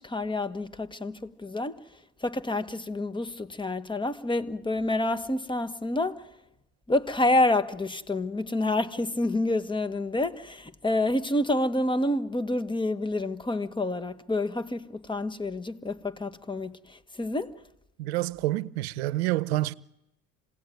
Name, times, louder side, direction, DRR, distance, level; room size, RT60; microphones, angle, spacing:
voice 1, 0.0-1.8 2.2-6.3 6.9-17.6, left 2 dB, 15° left, 1.5 m, -28 dB
voice 2, 18.0-19.7, right 17 dB, 90° right, 0.8 m, -28 dB
27.0 x 18.0 x 9.4 m
supercardioid pair, 75°, 31 cm